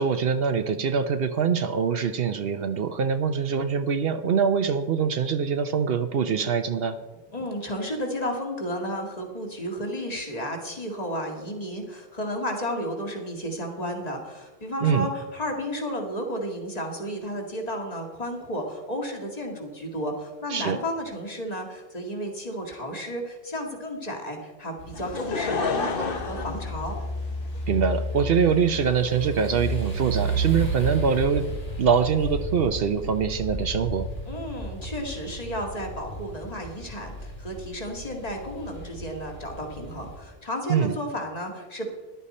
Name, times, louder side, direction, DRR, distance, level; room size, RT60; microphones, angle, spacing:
voice 1, 0.0-7.0 14.8-15.1 20.5-20.8 27.7-31.4 31.8-34.1 40.7-40.9, right 6 dB, 70° right, 9 dB, 0.9 m, -24 dB
voice 2, 7.3-27.0 34.3-41.9, equal, 40° left, 1 dB, 2.1 m, -33 dB
sound 1, 24.8-40.2, right 1 dB, 80° left, 2.9 m, -33 dB
Laughter / Crowd, 24.9-27.6 28.3-28.4, left 4 dB, 60° left, 1.3 m, -29 dB
14.0 x 11.5 x 4.2 m, 1.2 s
omnidirectional pair, 1.0 m